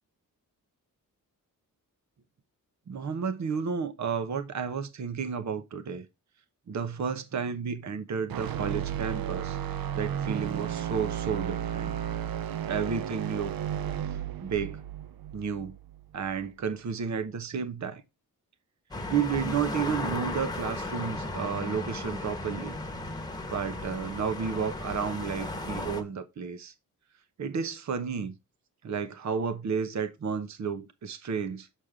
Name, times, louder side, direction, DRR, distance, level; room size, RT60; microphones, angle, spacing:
voice 1, 2.9-6.1 6.7-9.6 9.9-12.0 12.6-13.6 14.4-14.8 15.3-15.8 16.1-18.0 19.1-22.8 23.5-26.7 27.4-28.3 28.8-31.7, right 6 dB, 55° right, 1.0 m, -32 dB
sound 1, 8.3-16.4, right 10 dB, 85° right, 0.6 m, -33 dB
sound 2, 18.9-26.0, left 2 dB, 10° left, 1.2 m, -35 dB
7.4 x 6.6 x 3.6 m
wide cardioid pair, 145°, 34 cm